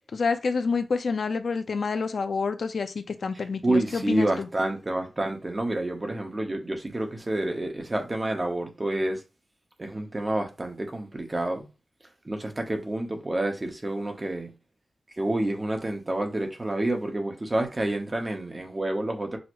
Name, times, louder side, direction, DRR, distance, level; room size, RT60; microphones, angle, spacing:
voice 1, 0.1-4.5, left 4 dB, 65° left, 0.6 m, -28 dB
voice 2, 3.6-9.2 9.8-11.7 12.2-14.5 15.2-19.4, right 1 dB, 25° right, 0.9 m, -28 dB
6.3 x 2.1 x 3.0 m
wide cardioid pair, 130°, 0 cm